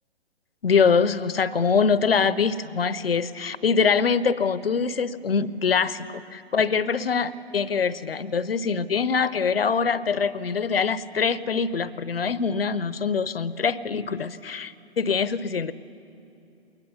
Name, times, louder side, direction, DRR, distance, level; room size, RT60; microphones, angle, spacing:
voice 1, 0.6-15.7, left 5 dB, 65° left, 17 dB, 0.7 m, -24 dB
21.0 x 20.0 x 7.0 m, 2.8 s
figure-of-eight pair, 130°, 33 cm